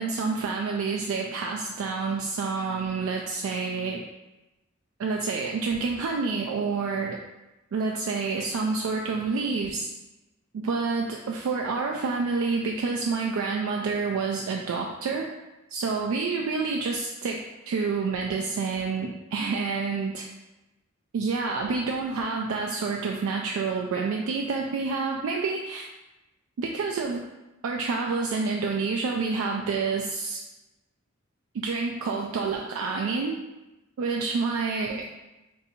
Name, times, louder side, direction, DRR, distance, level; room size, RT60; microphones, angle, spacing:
voice 1, 0.0-4.0 5.0-7.2 7.7-9.9 10.5-15.3 15.7-20.3 21.1-25.9 26.6-27.2 27.6-30.4 31.5-33.4 34.0-35.1, right 4 dB, 85° right, 0 dB, 0.3 m, -28 dB
2.6 x 2.6 x 4.1 m, 1.0 s
head